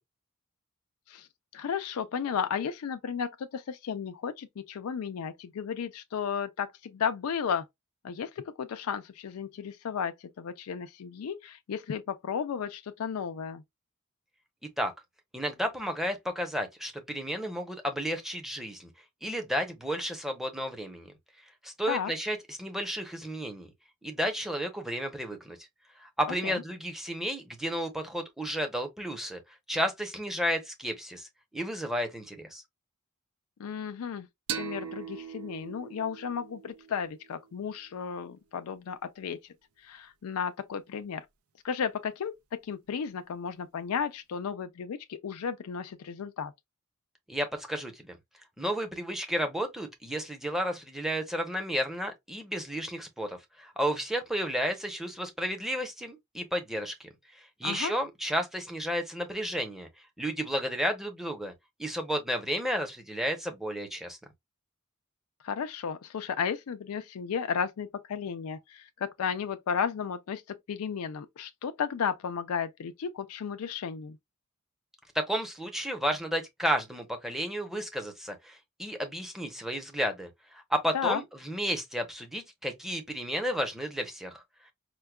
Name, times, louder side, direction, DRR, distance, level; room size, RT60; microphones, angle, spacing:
voice 1, 1.5-7.7 8.0-13.6 21.9-22.1 26.4-26.6 33.6-39.4 39.8-41.3 41.6-46.5 57.6-57.9 65.4-70.4 70.7-74.2 80.9-81.2, left 7 dB, 85° left, 0.4 m, -34 dB
voice 2, 15.3-18.9 19.2-21.1 21.6-23.7 24.0-25.6 26.0-29.4 29.7-31.3 31.5-32.6 47.3-48.1 48.6-57.1 57.3-59.9 60.2-61.5 61.8-64.2 75.1-84.4, equal, ahead, 0.7 m, -32 dB
sound 1, 34.5-37.9, right 9 dB, 75° right, 0.5 m, -40 dB
4.5 x 2.2 x 2.2 m
head